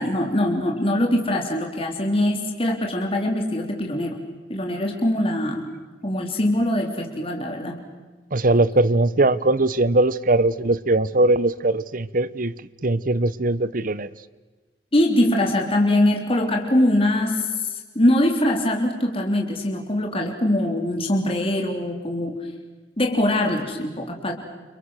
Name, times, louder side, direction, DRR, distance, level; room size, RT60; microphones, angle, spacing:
voice 1, 0.0-4.2 4.5-5.6 6.0-7.8 14.9-17.7 18.0-22.4 23.0-24.3, left 1 dB, 30° left, 3.6 m, -22 dB
voice 2, 8.3-12.5 12.8-14.1, right 2 dB, 50° right, 1.0 m, -20 dB
30.0 x 29.5 x 6.5 m
head